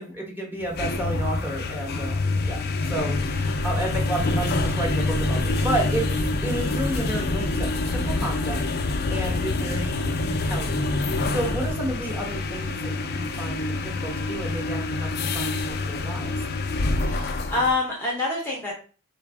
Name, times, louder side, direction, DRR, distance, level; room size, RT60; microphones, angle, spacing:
voice 1, 0.0-6.1 6.4-16.4, right 1 dB, 10° right, -2 dB, 1.0 m, -32 dB
sound 1, 0.6-17.8, left 2 dB, 45° left, 0.4 m, -26 dB
voice 2, 17.0-18.7, left 3 dB, 10° left, -4 dB, 0.7 m, -26 dB
4.4 x 2.4 x 3.4 m, 0.39 s
head